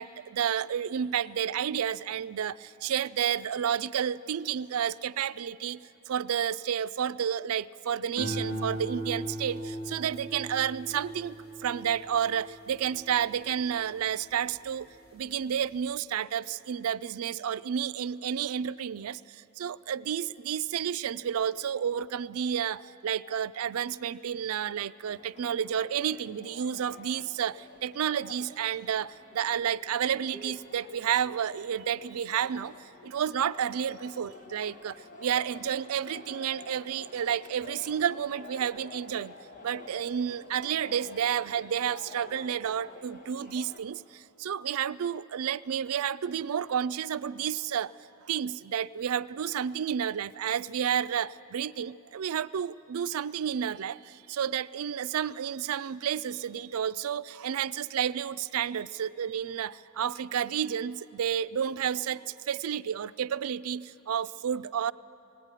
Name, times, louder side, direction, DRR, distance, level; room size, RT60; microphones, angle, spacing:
voice 1, 0.0-39.3 39.6-47.9 48.2-64.9, right 8 dB, 85° right, 16 dB, 0.4 m, -31 dB
sound 1, 8.2-14.7 15.2-15.6, right 1 dB, 85° left, 2.9 m, -39 dB
sound 2, 25.0-43.8, left 3 dB, 40° left, 1.4 m, -50 dB
19.5 x 17.5 x 9.0 m, 2.8 s
head